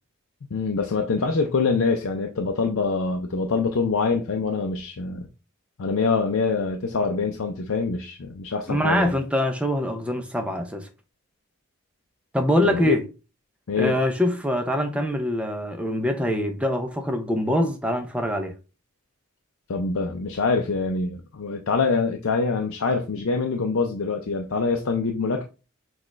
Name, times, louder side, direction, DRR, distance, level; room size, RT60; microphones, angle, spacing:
voice 1, 0.5-5.3 5.8-9.1 12.6-13.0 13.7-13.9 19.7-25.5, left 4 dB, 75° left, 0.5 m, -25 dB
voice 2, 8.7-10.9 12.3-13.1 13.8-18.5, equal, 5° right, 0.5 m, -24 dB
6.2 x 2.3 x 3.1 m
head